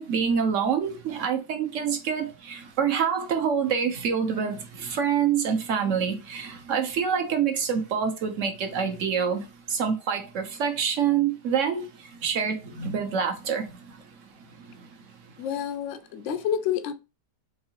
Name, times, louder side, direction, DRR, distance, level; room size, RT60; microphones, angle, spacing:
voice 1, 0.0-9.4 9.7-11.9 12.2-13.7, right 7 dB, 55° right, 1.1 m, -26 dB
voice 2, 15.4-16.9, left 8 dB, 65° left, 0.8 m, -29 dB
4.7 x 2.6 x 2.8 m
omnidirectional pair, 1.7 m